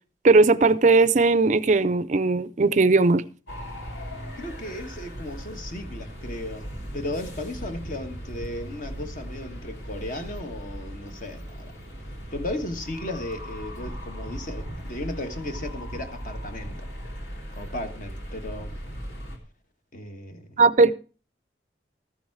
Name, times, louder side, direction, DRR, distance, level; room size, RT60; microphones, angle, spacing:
voice 1, 0.2-3.2 20.6-20.9, right 3 dB, 40° right, 16 dB, 0.4 m, -18 dB
sound 1, 3.5-19.4, equal, 70° left, 2.9 m, -38 dB
voice 2, 4.4-11.7 12.3-16.9 17.5-18.8 19.9-20.6, left 1 dB, 45° left, 7 dB, 1.4 m, -35 dB
14.0 x 7.2 x 4.7 m, 0.36 s
head